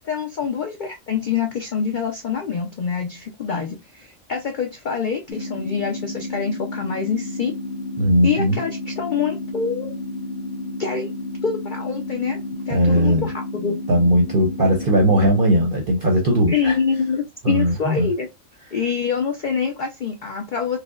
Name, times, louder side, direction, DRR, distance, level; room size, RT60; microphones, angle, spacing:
voice 1, 0.0-7.5 8.2-10.0 10.8-11.1 11.4-12.4 12.7-13.8 16.5-18.3 18.7-20.8, left 6 dB, 65° left, 0.4 m, -25 dB
sound 1, 5.3-15.3, left 2 dB, 80° left, 1.3 m, -31 dB
voice 2, 8.0-8.6 12.7-13.3 13.9-16.8 17.4-18.1, equal, 50° right, 0.7 m, -18 dB
4.8 x 2.1 x 2.3 m
omnidirectional pair, 1.4 m